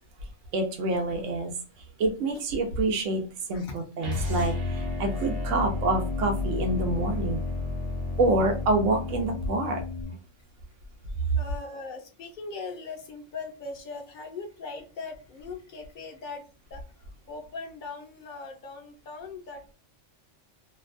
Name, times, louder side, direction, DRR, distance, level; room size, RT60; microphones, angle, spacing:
voice 1, 0.5-1.5 2.0-3.2 3.5-7.4 8.2-9.8, right 2 dB, 80° right, 4 dB, 1.0 m, -27 dB
sound 1, 4.0-10.2, left 3 dB, 55° right, 1.0 m, -31 dB
voice 2, 11.2-16.4 16.7-16.8 17.3-19.7, left 4 dB, 55° left, 4 dB, 0.6 m, -40 dB
2.6 x 2.1 x 2.4 m, 0.34 s
omnidirectional pair, 1.3 m